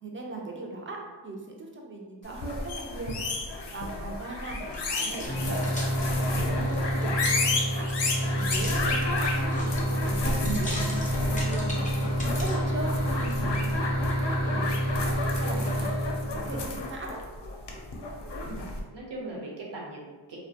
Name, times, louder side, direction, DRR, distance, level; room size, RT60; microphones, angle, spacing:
voice 1, 0.0-1.0 1.2-3.3 3.7-4.6 4.9-5.6 6.0-7.9 8.2-10.7 11.2-12.0 12.4-17.2, right 2 dB, 25° right, -1 dB, 0.4 m, -39 dB
sound 1, 2.3-18.8, left 2 dB, 60° left, 0.5 m, -32 dB
sound 2, 4.6-12.6 13.2-13.3, left 1 dB, 15° left, 0.6 m, -41 dB
voice 2, 5.0-5.5 18.4-20.4, right 2 dB, 60° right, -3 dB, 0.8 m, -41 dB
sound 3, 5.3-16.6, equal, 85° right, 1.0 m, -29 dB
2.3 x 2.1 x 2.7 m, 1.3 s
wide cardioid pair, 85°, 47 cm